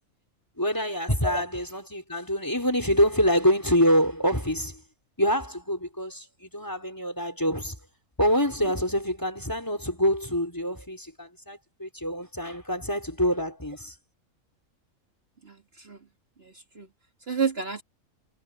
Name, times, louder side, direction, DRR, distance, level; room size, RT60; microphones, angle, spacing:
voice 1, 0.6-4.8 5.2-7.8 8.2-14.0, equal, 15° left, 4.6 m, -26 dB
voice 2, 15.4-16.0 16.4-16.9 17.3-17.8, right 4 dB, 45° right, 2.8 m, -30 dB
omnidirectional pair, 1.4 m